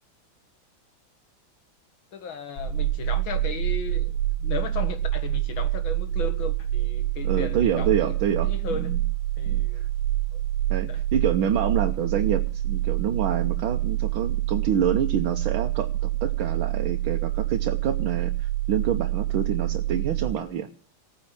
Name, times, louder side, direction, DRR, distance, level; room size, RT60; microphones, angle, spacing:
voice 1, 2.1-8.1 8.4-9.0 9.4-9.8 10.3-10.4 10.9-11.0, left 6 dB, 75° left, 2.5 m, -36 dB
sound 1, 2.6-20.3, right 14 dB, 60° left, 4.8 m, -27 dB
voice 2, 7.2-9.0 9.5-9.9 10.7-20.8, right 9 dB, 80° right, 1.8 m, -27 dB
16.5 x 9.4 x 7.2 m
omnidirectional pair, 2.2 m